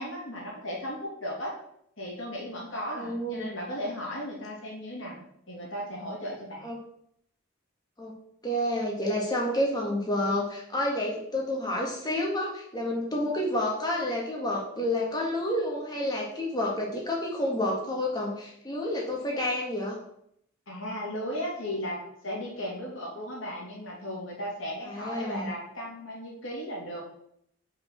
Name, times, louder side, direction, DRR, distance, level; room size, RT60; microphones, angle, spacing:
voice 1, 0.0-1.5 2.0-5.2 5.5-6.6 20.7-27.0, equal, 70° left, -3 dB, 2.9 m, -36 dB
voice 2, 3.0-3.5 6.6-6.8 8.0-8.1 8.4-20.0 24.8-25.5, left 1 dB, 20° left, -2 dB, 1.8 m, -29 dB
5.9 x 5.3 x 5.9 m, 0.71 s
head